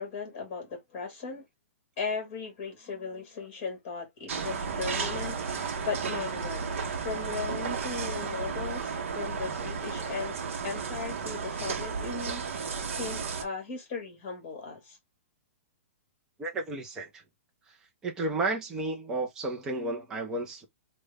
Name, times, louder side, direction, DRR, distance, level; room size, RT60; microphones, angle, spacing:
voice 1, 0.0-1.4 2.0-10.4 10.6-15.0, left 5 dB, 25° left, 1.6 m, -37 dB
sound 1, 4.3-13.4, right 5 dB, 60° right, 0.7 m, -33 dB
voice 2, 16.4-17.2 17.7-17.8 18.0-20.7, right 2 dB, 5° right, 0.4 m, -32 dB
3.2 x 2.1 x 3.3 m
hypercardioid pair, 180°, 8 cm